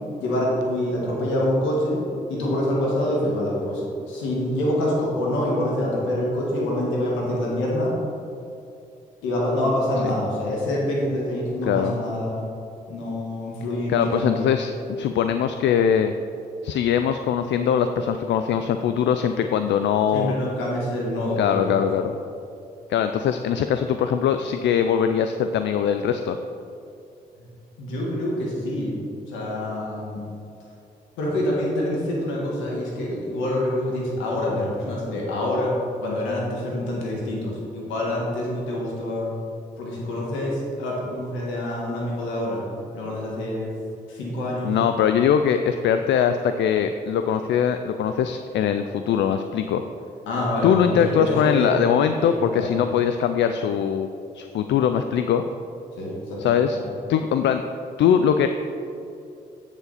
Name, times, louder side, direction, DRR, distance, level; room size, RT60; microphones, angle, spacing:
voice 1, 0.2-2.0 2.3-3.8 4.1-7.9 9.2-12.4 12.9-14.4 20.1-21.8 27.8-28.9 29.3-30.2 31.2-35.7 36.0-39.3 39.8-42.6 42.9-43.7 44.1-44.7 50.3-51.9 52.2-52.7 56.0-56.4 56.7-56.9, left 1 dB, 85° left, -4 dB, 1.6 m, -26 dB
voice 2, 11.6-11.9 13.9-16.1 16.6-20.3 21.4-22.2 22.9-26.4 44.6-49.8 50.6-54.1 54.3-55.4 56.4-56.8 57.1-57.6 58.0-58.5, left 8 dB, 70° left, 8 dB, 0.4 m, -21 dB
8.1 x 7.2 x 4.1 m, 2.6 s
supercardioid pair, 45°, 19 cm